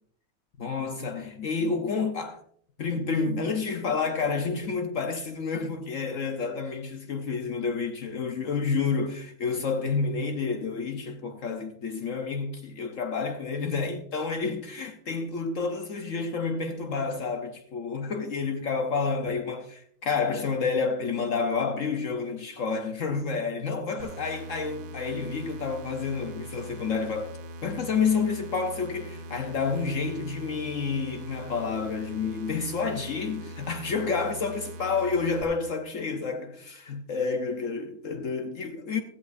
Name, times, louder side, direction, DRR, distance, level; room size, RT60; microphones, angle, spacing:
voice 1, 0.6-2.4 2.8-27.4 27.6-39.0, left 5 dB, 60° left, 1.2 m, -29 dB
sound 1, 24.0-35.4, equal, 85° right, 1.6 m, -42 dB
16.0 x 14.0 x 2.6 m
omnidirectional pair, 1.6 m